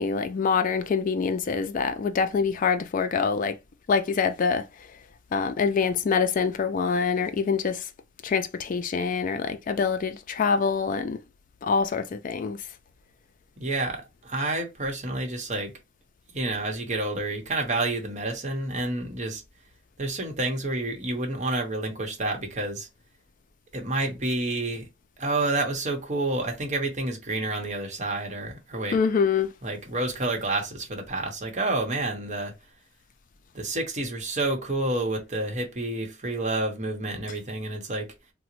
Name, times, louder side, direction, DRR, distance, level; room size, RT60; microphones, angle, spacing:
voice 1, 0.0-3.6 3.9-4.7 5.3-7.8 8.2-11.2 11.6-12.6 28.7-29.5, left 5 dB, 45° left, 0.3 m, -25 dB
voice 2, 13.6-15.7 16.3-19.4 20.0-22.9 23.7-24.9 25.2-29.0 29.6-32.5 33.5-38.1, right 2 dB, 40° right, 0.9 m, -29 dB
3.8 x 2.1 x 2.9 m
head